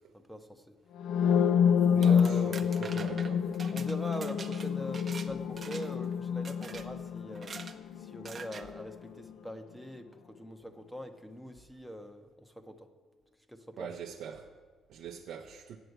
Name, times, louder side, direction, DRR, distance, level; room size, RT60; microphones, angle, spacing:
voice 1, 0.1-0.8 1.9-2.6 3.7-7.5 8.0-12.9 13.5-13.9, equal, 5° left, 0.7 m, -43 dB
sound 1, 1.0-8.8, left 7 dB, 70° left, 0.3 m, -28 dB
sound 2, 1.8-5.3 5.6-6.0 6.4-6.9 7.3-7.8 8.2-8.7, right 5 dB, 35° right, 0.6 m, -45 dB
voice 2, 2.0-2.5 2.8-3.4 13.8-14.5 14.9-15.8, right 8 dB, 75° right, 0.6 m, -42 dB
7.9 x 7.7 x 7.9 m
cardioid pair, 110°, 0 cm